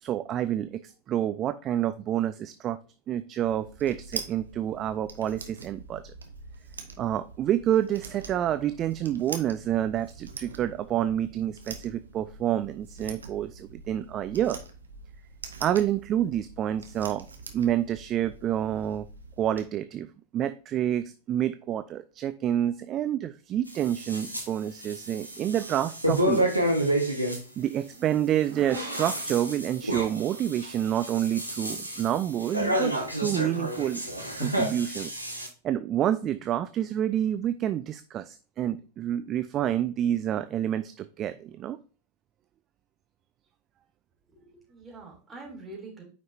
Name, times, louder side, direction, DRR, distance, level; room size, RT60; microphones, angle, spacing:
voice 1, 0.0-2.8 3.1-6.0 7.0-14.6 15.6-17.3 17.5-19.1 19.4-20.1 20.3-26.5 27.6-34.0 34.4-35.1 35.6-41.8, right 11 dB, 30° right, 12 dB, 0.4 m, -28 dB
sound 1, 3.4-19.6, right 4 dB, 70° right, 1.1 m, -44 dB
sound 2, 23.7-24.5 24.8-27.4 28.5-35.5, right 1 dB, 90° right, 1.4 m, -30 dB
voice 2, 44.3-46.0, right 3 dB, 15° right, -2 dB, 3.3 m, -45 dB
9.1 x 5.3 x 2.7 m, 0.38 s
figure-of-eight pair, 90°, 0 cm